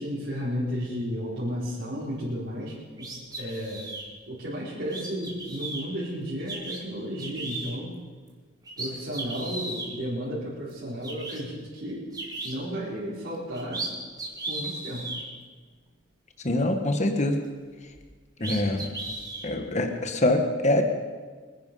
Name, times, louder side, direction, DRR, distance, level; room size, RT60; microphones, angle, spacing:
voice 1, 0.0-3.1 3.4-3.9 4.3-7.9 8.8-12.1 12.4-13.9 14.4-15.1, equal, 60° right, -10 dB, 4.8 m, -33 dB
sound 1, 3.0-4.0 4.9-5.8 6.5-6.8 7.2-7.7 8.3-8.4 8.6-9.9 10.7-10.8 11.0-11.4 12.1-12.5 13.3-13.9 14.2-15.2 17.9-18.0 18.4-19.5, right 2 dB, 20° right, 2.7 m, -35 dB
voice 2, 16.4-17.4 18.4-18.9 19.4-20.8, left 1 dB, 35° left, 6 dB, 1.4 m, -24 dB
25.0 x 10.5 x 5.5 m, 1.5 s
head